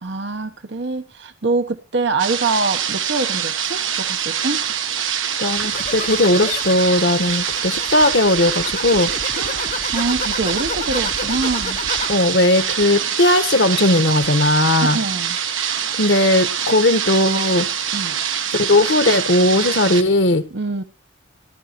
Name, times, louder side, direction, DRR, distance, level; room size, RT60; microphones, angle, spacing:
voice 1, 0.0-4.6 9.3-11.8 14.8-15.4 17.9-18.2 20.5-20.8, right 3 dB, 60° right, 9 dB, 0.9 m, -24 dB
sound 1, 2.2-20.0, right 8 dB, 80° right, 1.3 m, -24 dB
voice 2, 5.4-9.1 12.1-15.0 16.0-17.7 18.6-20.4, left 1 dB, 60° left, 9 dB, 1.3 m, -17 dB
sound 2, 5.5-12.2 12.6-13.1, left 4 dB, 40° left, 0.8 m, -32 dB
19.0 x 11.5 x 3.0 m, 0.28 s
head